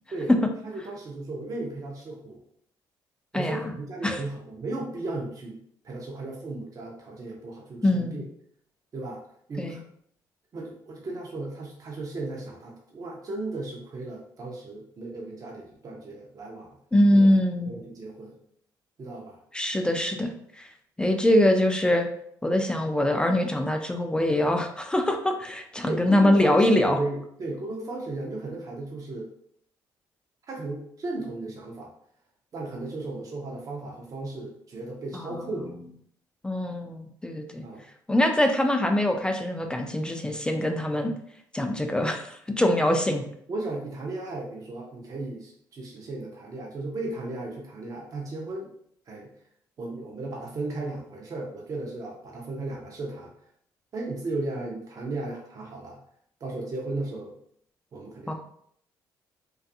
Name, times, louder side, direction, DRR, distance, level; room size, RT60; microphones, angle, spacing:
voice 1, 0.6-2.4 3.3-5.6 5.8-8.2 8.9-9.2 9.5-9.8 10.5-16.7 17.1-17.3 17.7-18.4 19.0-19.4 25.8-29.3 30.5-31.9 32.5-35.7 37.6-37.8 43.5-48.7 49.1-49.3 49.8-53.3 53.9-56.0 56.4-57.3 57.9-58.3, right 2 dB, 40° right, -2 dB, 0.6 m, -35 dB
voice 2, 3.3-3.7 4.0-4.2 7.8-8.2 9.6-9.8 16.9-17.7 19.5-20.7 21.0-22.1 22.4-27.0 35.1-35.5 36.4-37.6 38.1-41.1 41.5-43.2 58.3-58.4, left 1 dB, 10° left, 4 dB, 0.4 m, -23 dB
2.5 x 2.3 x 2.6 m, 0.67 s
supercardioid pair, 70°, 9 cm